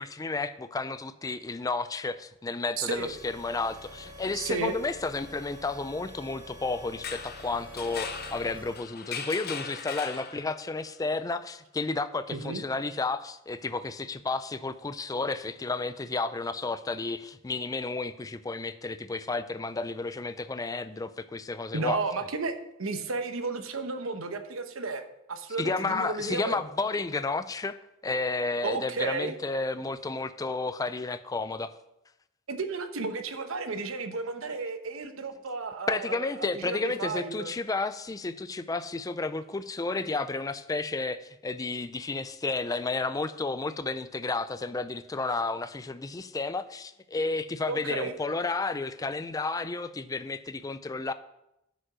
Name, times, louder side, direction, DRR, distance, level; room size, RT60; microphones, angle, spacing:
voice 1, 0.0-22.0 25.6-27.8 28.0-31.7 35.9-51.1, left 3 dB, 15° left, 12 dB, 0.4 m, -32 dB
sound 1, 2.8-8.8, equal, 25° right, 2.4 m, -47 dB
voice 2, 2.8-3.1 4.3-4.7 12.3-12.6 21.7-22.5 22.8-25.0 25.3-26.6 28.6-29.4 32.5-37.5 47.7-48.1, right 3 dB, 85° right, 7 dB, 1.0 m, -33 dB
sound 2, 6.9-10.8, left 6 dB, 50° left, 0.8 m, -39 dB
9.9 x 5.3 x 6.0 m, 0.85 s
head